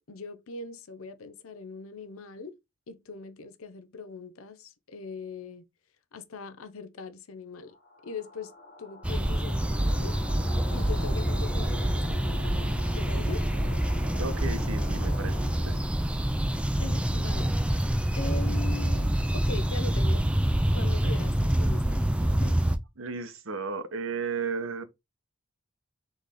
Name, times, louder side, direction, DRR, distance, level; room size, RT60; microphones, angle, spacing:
voice 1, 0.1-2.6 2.9-5.6 6.1-7.7 8.0-8.5 8.8-10.2 10.7-13.4 16.8-17.9 18.1-20.2 20.7-22.6, left 4 dB, 85° left, 0.6 m, -41 dB
sound 1, 7.7-16.1, left 3 dB, 45° left, 1.4 m, -44 dB
sound 2, 9.0-22.8, right 1 dB, 5° right, 0.4 m, -26 dB
voice 2, 14.2-15.8 21.0-21.1 23.0-24.8, right 4 dB, 75° right, 0.8 m, -34 dB
4.0 x 3.2 x 3.6 m
head